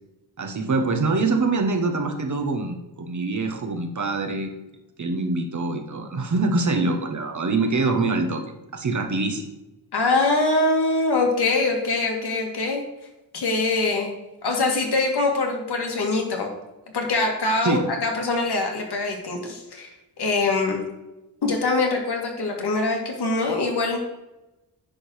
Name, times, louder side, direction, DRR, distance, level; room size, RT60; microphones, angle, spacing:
voice 1, 0.4-4.5 5.0-8.4 8.7-9.5 17.6-17.9, right 3 dB, 45° right, 4 dB, 1.2 m, -24 dB
voice 2, 9.9-12.8 13.3-14.1 14.4-16.5 16.9-19.9 20.2-20.8 21.4-24.0, left 3 dB, 70° left, 1 dB, 2.1 m, -23 dB
10.0 x 3.9 x 6.3 m, 0.98 s
wide cardioid pair, 120°, 41 cm